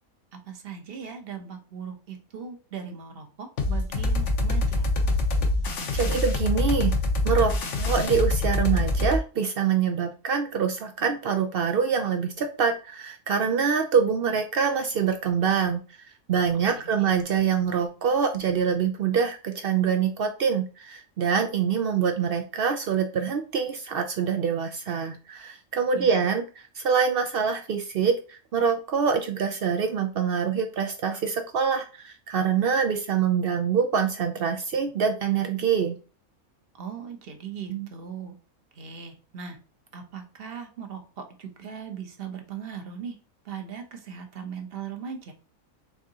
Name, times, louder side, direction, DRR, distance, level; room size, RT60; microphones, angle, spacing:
voice 1, 0.3-4.9 16.8-17.1 25.9-26.3 36.8-38.3 38.7-39.6 39.9-43.2 43.4-45.3, right 7 dB, 50° right, 5 dB, 0.9 m, -39 dB
sound 1, 3.6-9.2, left 2 dB, 60° left, 1.0 m, -25 dB
voice 2, 5.9-6.9 7.2-15.8 16.3-26.4 26.8-36.0 37.7-37.9, right 6 dB, 70° right, 5 dB, 0.5 m, -25 dB
4.6 x 3.5 x 2.8 m, 0.35 s
omnidirectional pair, 1.5 m